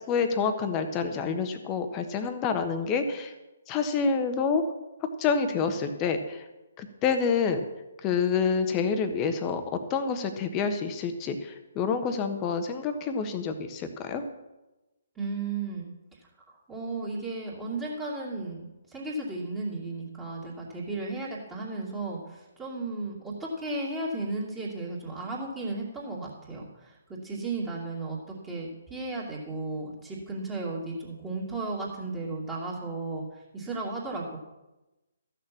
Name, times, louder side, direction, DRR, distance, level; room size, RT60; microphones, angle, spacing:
voice 1, 0.1-3.3 3.7-4.6 5.2-6.4 6.8-7.6 8.0-9.6 9.9-14.2, left 5 dB, 25° left, 7 dB, 1.2 m, -27 dB
voice 2, 15.2-15.9 16.7-18.6 18.9-27.0 27.2-34.4, right 2 dB, 10° right, -6 dB, 2.5 m, -34 dB
14.0 x 6.7 x 7.2 m, 1.0 s
figure-of-eight pair, 135°, 0 cm